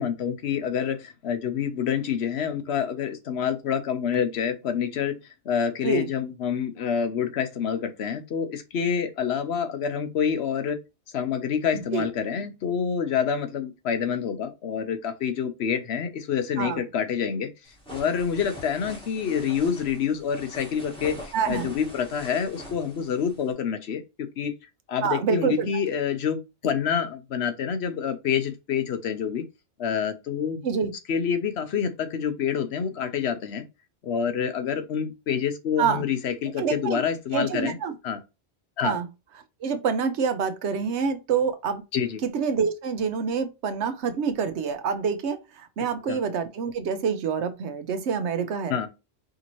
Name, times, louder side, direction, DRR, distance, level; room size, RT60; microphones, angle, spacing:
voice 1, 0.0-5.2 5.4-10.8 11.1-17.5 17.9-24.0 24.4-24.5 24.9-29.5 29.8-30.6 31.1-33.6 34.0-37.8 38.0-38.2 38.8-39.0 41.9-42.2 46.0-46.2 48.7-48.9, left 7 dB, 75° left, 1.0 m, -27 dB
sound 1, 17.6-23.5, equal, 5° left, 1.1 m, -43 dB
voice 2, 21.3-21.7 25.0-25.7 30.6-30.9 35.8-36.0 36.6-37.0 37.3-37.9 38.8-39.1 39.6-41.8 42.2-48.7, right 6 dB, 85° right, 1.0 m, -26 dB
5.0 x 2.7 x 3.0 m
omnidirectional pair, 1.1 m